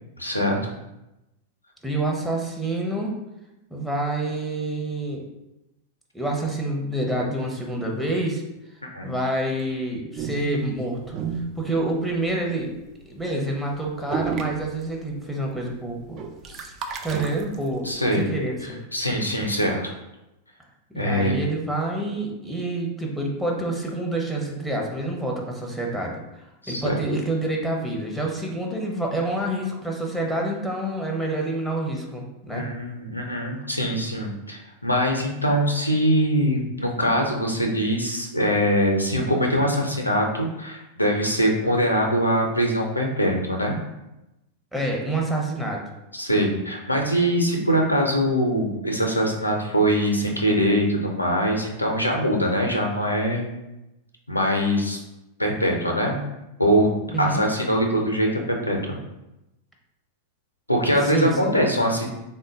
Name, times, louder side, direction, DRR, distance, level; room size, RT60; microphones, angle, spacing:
voice 1, 0.2-0.6 8.9-9.1 17.8-18.3 18.9-19.9 21.0-21.3 26.6-27.0 32.5-43.8 46.1-53.5 54.3-55.0 55.4-56.2 56.6-56.9 57.2-59.0 60.7-62.1, equal, 85° left, 1 dB, 0.5 m, -23 dB
voice 2, 1.8-3.1 3.7-5.2 6.1-8.4 9.0-11.0 11.6-12.7 13.1-16.2 16.5-16.7 17.0-18.8 20.9-32.7 44.7-45.8 57.1-57.4 61.0-61.6, right 2 dB, ahead, -1 dB, 0.7 m, -27 dB
sound 1, 10.2-12.4 12.8-13.1 13.3-13.5 13.8-13.9 14.1-15.3 15.6-18.0, right 6 dB, 35° right, 0.4 m, -32 dB
3.6 x 2.1 x 3.8 m, 0.94 s
figure-of-eight pair, 90°, 0 cm